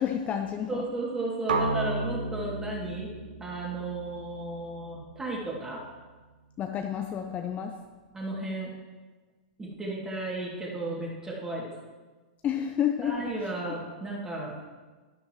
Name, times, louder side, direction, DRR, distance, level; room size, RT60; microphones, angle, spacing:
voice 1, 0.0-0.8 6.6-7.7 12.4-13.1 13.7-13.8, left 9 dB, 30° left, 4 dB, 0.7 m, -30 dB
voice 2, 0.7-3.1 3.4-5.8 8.1-8.7 9.6-11.7 13.0-14.7, right 2 dB, 10° right, -4 dB, 2.8 m, -34 dB
sound 1, 1.5-5.4, right 3 dB, 75° right, 1.1 m, -33 dB
11.5 x 10.5 x 3.2 m, 1.3 s
hypercardioid pair, 115°, 5 cm